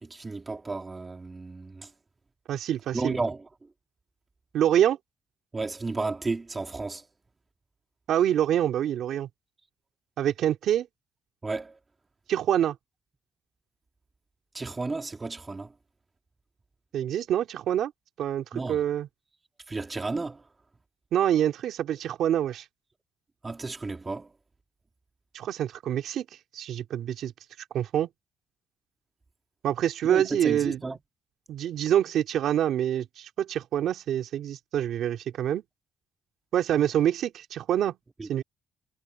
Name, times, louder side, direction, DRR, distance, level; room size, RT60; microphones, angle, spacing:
voice 1, 0.0-1.9 2.9-3.4 5.5-7.0 11.4-11.8 14.5-15.7 18.5-18.8 19.7-20.4 23.4-24.3 30.0-31.0 38.2-38.4, right 3 dB, 25° right, 2.4 m, -33 dB
voice 2, 2.5-3.2 4.5-5.0 8.1-9.3 10.2-10.9 12.3-12.8 16.9-17.9 18.2-19.1 21.1-22.6 25.3-26.3 26.5-27.3 27.7-28.1 29.6-30.8 31.5-35.6 36.5-38.0 38.3-38.4, right 10 dB, 75° right, 2.5 m, -26 dB
cardioid pair, 90°, 0 cm